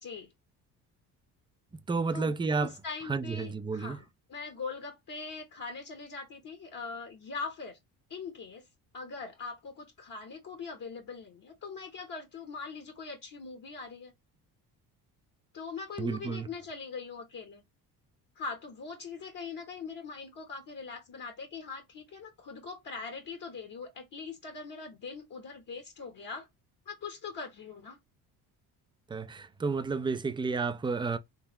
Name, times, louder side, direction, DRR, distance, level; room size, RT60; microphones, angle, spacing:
voice 1, 0.0-0.3 2.1-7.8 8.1-8.6 8.9-14.1 15.5-17.6 18.4-26.5 26.9-28.0, left 4 dB, 45° left, 1.2 m, -42 dB
voice 2, 1.9-2.7 3.1-4.0 16.0-16.5 29.1-31.2, right 4 dB, 10° right, 0.4 m, -31 dB
3.7 x 3.1 x 3.1 m
hypercardioid pair, 60°, 45 cm